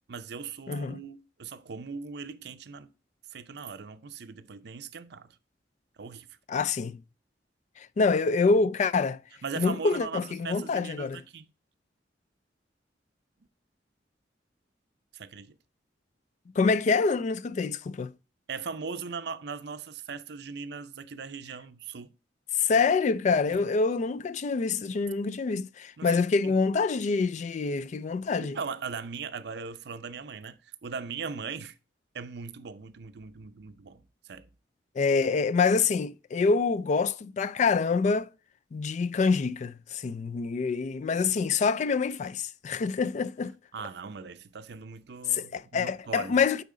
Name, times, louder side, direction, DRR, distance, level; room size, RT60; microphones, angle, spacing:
voice 1, 0.1-2.9 3.3-5.3 6.0-6.3 9.4-11.5 15.1-15.5 18.5-22.1 23.5-23.6 26.0-26.5 28.4-31.7 32.1-34.5 43.7-46.4, right 5 dB, 65° right, 0.5 m, -39 dB
voice 2, 0.7-1.0 6.5-7.0 7.8-9.2 9.6-11.2 16.6-18.1 22.6-28.6 35.0-38.3 38.7-43.5 45.3-46.6, left 4 dB, 40° left, 0.3 m, -26 dB
9.2 x 4.1 x 3.7 m
head